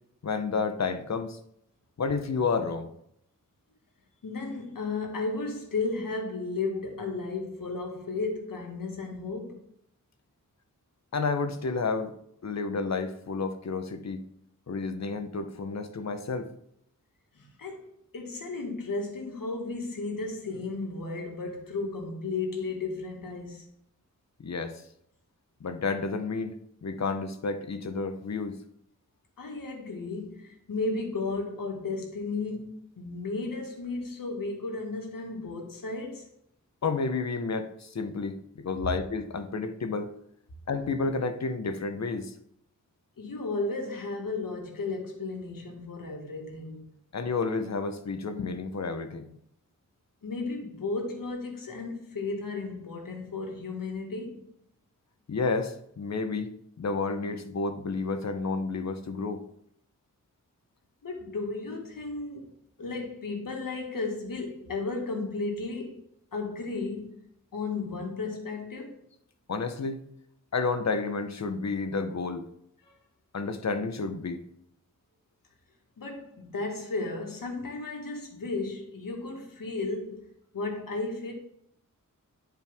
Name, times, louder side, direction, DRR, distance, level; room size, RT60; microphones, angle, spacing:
voice 1, 0.2-1.4 2.0-2.9 11.1-12.1 12.4-14.2 14.7-16.5 24.4-24.8 25.6-26.5 26.8-28.6 36.8-40.1 40.7-42.3 47.1-49.3 55.3-56.5 56.8-59.4 69.5-70.0 70.5-72.5 73.3-74.4, left 4 dB, 55° left, 0.9 m, -30 dB
voice 2, 4.2-9.6 17.4-23.7 29.4-36.3 43.2-46.8 50.2-54.5 61.0-62.5 62.8-66.0 66.3-67.2 67.5-69.0 72.8-72.9 76.0-80.3 80.5-81.3, left 3 dB, 80° left, 1.8 m, -34 dB
10.0 x 4.6 x 3.5 m
cardioid pair, 65°, 33 cm